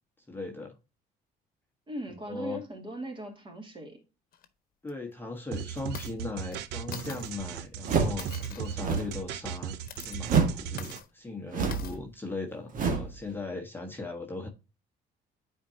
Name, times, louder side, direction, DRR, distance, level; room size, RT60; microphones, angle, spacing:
voice 1, 0.3-0.7 2.3-2.6 4.8-14.5, left 3 dB, 10° left, 1.3 m, -38 dB
voice 2, 1.9-4.0, right 1 dB, 30° right, 2.9 m, -39 dB
sound 1, 4.3-4.5 4.9-5.0 5.8-6.1 6.5-6.6 6.9-7.3 8.2-8.8 9.7-10.2 10.8-11.1 11.7-12.0, left 9 dB, 60° left, 1.2 m, -43 dB
sound 2, 5.5-11.0, right 8 dB, 85° right, 0.7 m, -37 dB
sound 3, 7.8-8.3 8.7-9.2 10.2-10.7 11.5-12.0 12.7-13.2, right 5 dB, 50° right, 1.7 m, -27 dB
9.2 x 4.6 x 2.8 m
cardioid pair, 110°, 17 cm